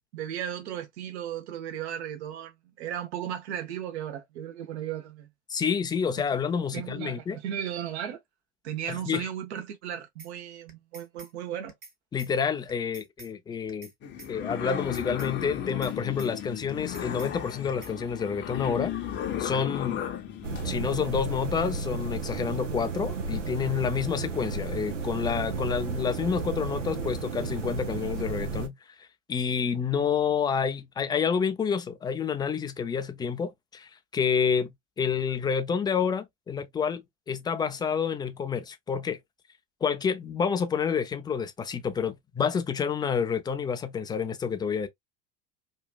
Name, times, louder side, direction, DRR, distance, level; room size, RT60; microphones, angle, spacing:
voice 1, 0.1-5.3 6.7-8.2 8.6-11.7, right 10 dB, 65° right, 0.9 m, -35 dB
voice 2, 5.5-7.4 8.9-9.3 12.1-13.9 14.3-18.9 19.4-20.0 20.6-28.7 29.0-34.7 35.0-39.2 39.8-44.9, left 6 dB, 10° left, 0.3 m, -29 dB
sound 1, 10.2-10.3 10.7-11.3 11.7-11.9 12.2-12.3 12.7-13.3 13.7-13.9 14.2-14.3 14.7-15.3 15.7-15.9 16.2-16.3 16.7-17.3 17.7-17.9, right 3 dB, 25° right, 1.0 m, -48 dB
sound 2, 14.0-20.8, left 10 dB, 30° left, 0.7 m, -35 dB
sound 3, 20.4-28.7, right 3 dB, 85° right, 0.7 m, -33 dB
3.0 x 2.3 x 2.2 m
hypercardioid pair, 80°, 36 cm